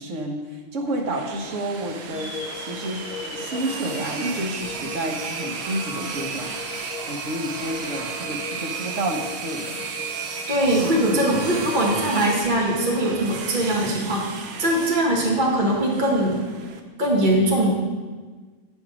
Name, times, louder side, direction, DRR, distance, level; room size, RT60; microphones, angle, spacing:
voice 1, 0.0-3.0 3.3-6.5 7.1-9.8 10.7-11.7, right 1 dB, 80° right, 2 dB, 1.3 m, -30 dB
sound 1, 0.9-16.8, right 5 dB, 65° right, 0.9 m, -34 dB
sound 2, 2.1-14.2, left 2 dB, 45° left, 1.6 m, -38 dB
voice 2, 10.5-14.2 14.6-16.4 17.0-17.7, right 1 dB, 40° right, -2 dB, 1.4 m, -21 dB
7.8 x 4.5 x 6.0 m, 1.4 s
omnidirectional pair, 1.3 m